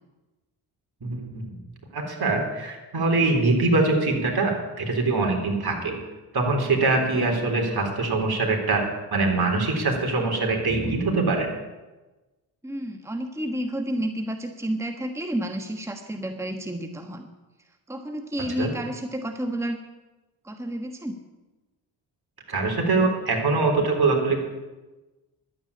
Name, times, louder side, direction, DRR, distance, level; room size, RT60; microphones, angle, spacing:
voice 1, 1.0-1.6 1.9-6.0 6.3-8.8 9.1-11.5 18.6-18.7 22.5-24.4, right 3 dB, 50° right, 2 dB, 3.8 m, -23 dB
voice 2, 12.6-17.3 17.9-19.8 20.4-21.1, right 1 dB, 5° right, 6 dB, 1.3 m, -30 dB
11.5 x 9.1 x 8.6 m, 1.1 s
hypercardioid pair, 40°, 49 cm